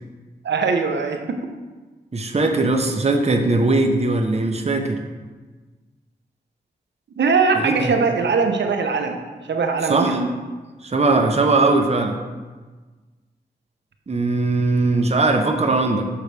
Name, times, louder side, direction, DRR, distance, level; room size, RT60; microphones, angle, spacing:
voice 1, 0.4-1.4 7.2-9.2 9.5-10.3, right 4 dB, 75° right, 5 dB, 0.7 m, -21 dB
voice 2, 2.1-5.0 7.6-7.9 9.8-10.2 10.8-12.2 14.1-16.1, right 3 dB, 35° right, 4 dB, 0.7 m, -20 dB
6.5 x 5.7 x 3.3 m, 1.3 s
cardioid pair, 40°, 18 cm